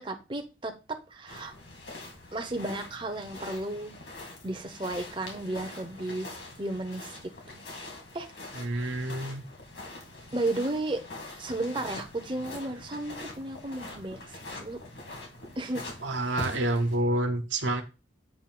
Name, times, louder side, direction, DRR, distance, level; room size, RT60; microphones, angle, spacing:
voice 1, 0.0-1.5 2.3-3.9 4.2-6.3 6.6-7.2 8.1-8.3 10.3-11.0 11.4-14.8 15.6-15.8, right 2 dB, 25° right, 0.8 m, -33 dB
sound 1, 1.3-17.0, left 2 dB, 70° left, 2.6 m, -43 dB
voice 2, 8.5-9.4 16.0-17.8, right 1 dB, 80° right, 1.3 m, -28 dB
8.3 x 3.0 x 6.0 m
head